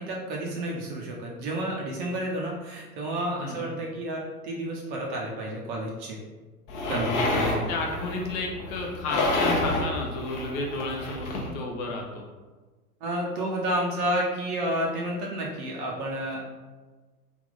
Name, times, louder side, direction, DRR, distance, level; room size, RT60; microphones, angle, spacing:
voice 1, 0.0-6.2 6.9-7.7 13.0-16.4, right 1 dB, 35° right, -2 dB, 0.6 m, -30 dB
voice 2, 3.4-3.8 6.9-12.2, left 2 dB, 20° left, 0 dB, 0.5 m, -33 dB
sound 1, 6.7-11.5, left 2 dB, 35° left, 0.8 m, -29 dB
3.4 x 2.4 x 3.8 m, 1.3 s
figure-of-eight pair, 100°, 46 cm